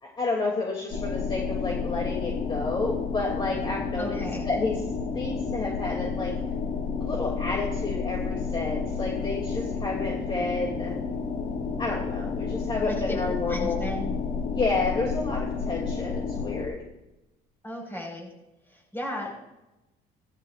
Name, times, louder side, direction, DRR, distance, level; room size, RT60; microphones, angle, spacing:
voice 1, 0.0-4.2 4.5-4.7 5.1-6.3 7.0-11.0 11.8-13.9 14.5-16.8, left 3 dB, 30° left, -1 dB, 2.9 m, -30 dB
sound 1, 0.9-16.7, left 5 dB, 45° left, 2.0 m, -31 dB
voice 2, 4.0-4.4 12.9-13.2 13.5-14.2 17.6-18.3 18.7-19.3, equal, 15° left, 0 dB, 5.4 m, -35 dB
17.5 x 13.5 x 2.6 m, 0.95 s
cardioid pair, 110°, 17 cm